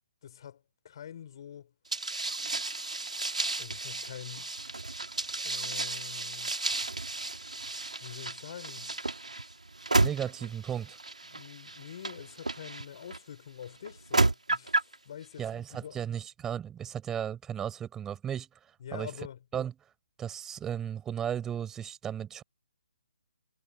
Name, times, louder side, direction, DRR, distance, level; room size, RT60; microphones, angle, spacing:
voice 1, 0.2-1.7 3.6-4.5 5.4-6.5 8.0-8.9 11.3-16.0 18.8-19.4, left 9 dB, 40° left, 7.5 m, -45 dB
sound 1, 1.9-13.2 13.8-15.0, right 2 dB, 75° right, 4.1 m, -32 dB
voice 2, 10.0-11.0 15.4-19.1 19.5-19.7 20.2-22.4, right 9 dB, 10° right, 7.8 m, -35 dB
figure-of-eight pair, 140°, 4 cm